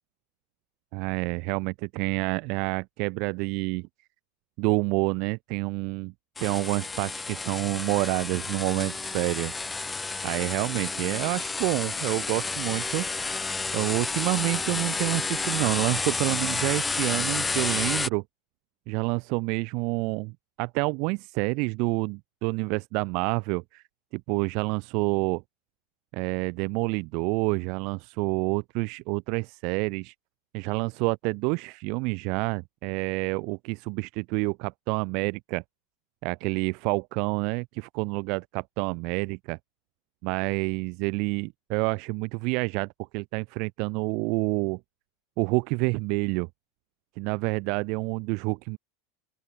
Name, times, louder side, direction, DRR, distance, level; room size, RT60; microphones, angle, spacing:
voice 1, 0.9-3.9 4.6-6.1 6.4-9.5 10.2-13.1 13.7-18.2 18.9-20.3 20.6-23.8 24.1-25.4 26.1-30.1 30.5-35.6 36.2-39.6 40.2-44.8 45.4-46.5 47.2-48.8, right 30 dB, 55° right, 3.3 m, -28 dB
sound 1, 6.4-18.1, left 3 dB, 10° left, 0.9 m, -30 dB
open air
supercardioid pair, 140°, 0 cm